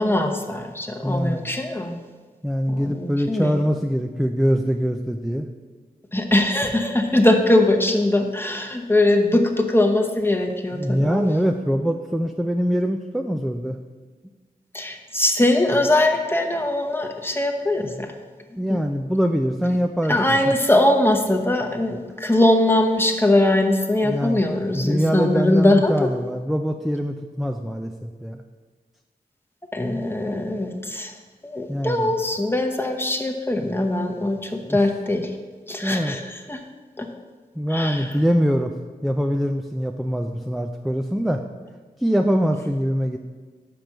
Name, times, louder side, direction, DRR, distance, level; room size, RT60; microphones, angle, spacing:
voice 1, 0.0-2.0 2.7-3.6 6.1-11.3 14.7-18.1 18.7-18.8 20.1-26.1 29.7-31.1 31.4-35.3 35.7-36.6 37.0-37.1 37.7-38.1, left 1 dB, 15° left, 3 dB, 0.9 m, -21 dB
voice 2, 1.0-1.5 2.4-5.5 10.7-13.8 18.6-20.5 24.0-28.4 31.7-32.1 34.5-34.8 35.8-36.2 37.6-38.7 39.0-41.4 42.0-43.2, equal, ahead, 4 dB, 0.4 m, -23 dB
5.9 x 5.1 x 6.2 m, 1.4 s
cardioid pair, 55°, 16 cm